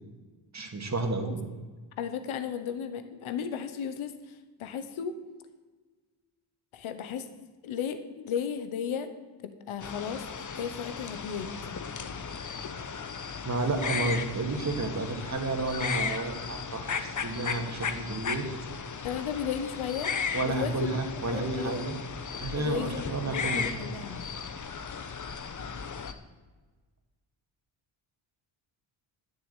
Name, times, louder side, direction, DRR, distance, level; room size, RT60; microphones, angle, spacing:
voice 1, 0.5-1.5 13.4-18.5 20.3-22.0 22.4-23.7, right 2 dB, 35° right, 4 dB, 2.0 m, -31 dB
voice 2, 2.0-5.1 6.7-7.3 7.6-9.1 9.7-10.2 10.5-11.5 19.0-20.1 20.4-20.7 21.3-22.0 22.6-24.3, left 8 dB, 80° left, 9 dB, 1.1 m, -34 dB
sound 1, 9.8-26.1, left 6 dB, 40° left, 1.0 m, -36 dB
10.0 x 6.8 x 9.1 m, 1.3 s
cardioid pair, 75°, 48 cm